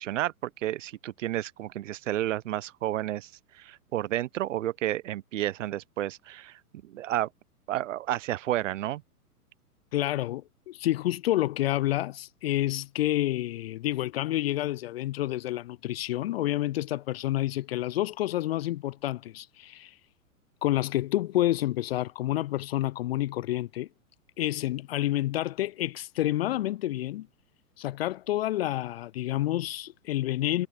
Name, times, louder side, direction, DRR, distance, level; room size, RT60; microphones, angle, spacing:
voice 1, 0.0-3.3 3.6-7.3 7.7-9.0, right 13 dB, 55° right, 1.0 m, -31 dB
voice 2, 9.9-19.9 20.6-23.9 24.4-27.3 27.8-30.7, left 15 dB, 40° left, 0.6 m, -29 dB
figure-of-eight pair, 110°, 46 cm